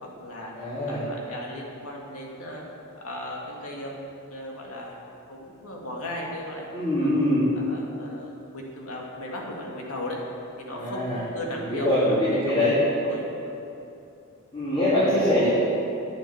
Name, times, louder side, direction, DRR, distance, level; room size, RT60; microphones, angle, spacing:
voice 1, 0.0-2.6 3.0-4.0 4.3-5.0 5.3-7.1 7.5-10.2 10.6-12.2 12.4-12.7 13.0-13.6, left 1 dB, 70° left, -2 dB, 2.2 m, -37 dB
voice 2, 0.6-1.0 6.7-7.4 10.7-11.2 11.7-12.8 14.5-15.5, left 1 dB, 25° left, -11 dB, 2.9 m, -23 dB
10.0 x 8.8 x 7.1 m, 2.7 s
head